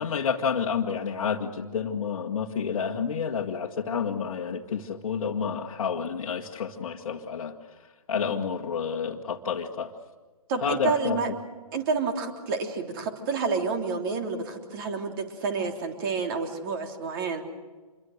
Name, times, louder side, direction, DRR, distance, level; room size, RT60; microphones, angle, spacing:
voice 1, 0.0-7.5 8.1-9.9 10.6-11.4, left 6 dB, 55° left, -2 dB, 1.6 m, -29 dB
voice 2, 10.5-11.3 11.7-17.4, right 4 dB, 35° right, 4 dB, 3.4 m, -29 dB
27.0 x 22.5 x 6.6 m, 1.4 s
figure-of-eight pair, 140°, 19 cm